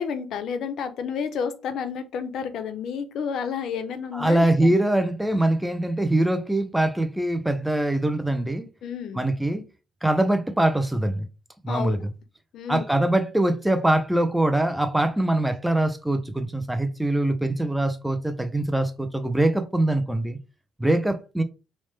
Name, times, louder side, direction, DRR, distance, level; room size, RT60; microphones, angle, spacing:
voice 1, 0.0-4.7 8.8-9.2 11.7-12.0 12.5-13.0, left 6 dB, 55° left, 0.5 m, -30 dB
voice 2, 4.1-8.7 9.1-9.7 10.0-11.3 11.6-12.1 12.7-20.4 20.8-21.4, right 1 dB, 5° right, 0.3 m, -23 dB
3.0 x 2.0 x 3.1 m
cardioid pair, 165°, 0 cm